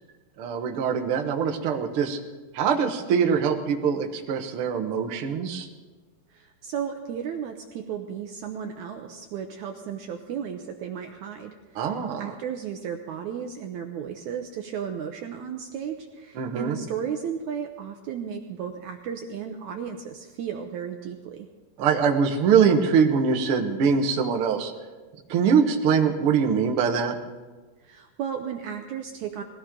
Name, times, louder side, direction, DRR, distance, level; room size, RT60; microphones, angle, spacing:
voice 1, 0.4-2.2 2.5-5.7 11.7-12.3 16.3-16.7 21.8-24.7 25.3-27.2, right 6 dB, 70° right, 3 dB, 1.3 m, -23 dB
voice 2, 6.3-21.5 27.8-29.4, right 8 dB, 90° right, 4 dB, 1.7 m, -34 dB
20.5 x 16.5 x 3.8 m, 1.3 s
omnidirectional pair, 4.4 m